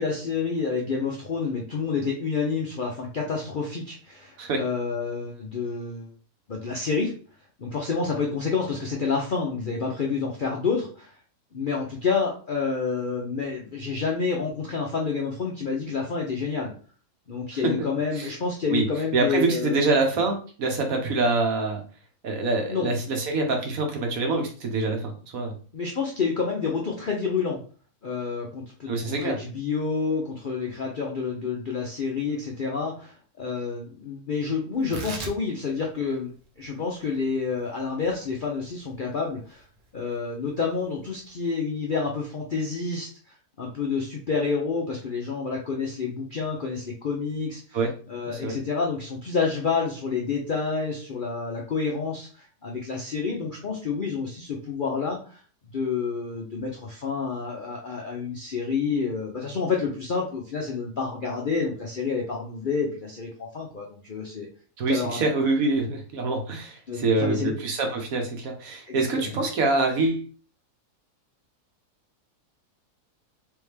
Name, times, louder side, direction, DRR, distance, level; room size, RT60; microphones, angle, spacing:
voice 1, 0.0-6.0 6.5-7.1 7.6-11.1 11.5-16.7 17.3-19.9 22.7-22.9 25.7-27.6 28.0-39.6 39.9-55.4 55.7-64.5 64.9-65.2 66.9-67.5 68.9-69.3, left 5 dB, 55° left, -1 dB, 0.5 m, -29 dB
voice 2, 19.1-21.8 22.2-25.5 28.9-29.4 47.7-47.9 48.3-48.6 64.8-70.2, right 3 dB, 65° right, 3 dB, 1.3 m, -25 dB
Tearing, 34.7-41.5, right 4 dB, 45° right, 0.7 m, -43 dB
3.5 x 3.3 x 3.3 m, 0.40 s
omnidirectional pair, 1.7 m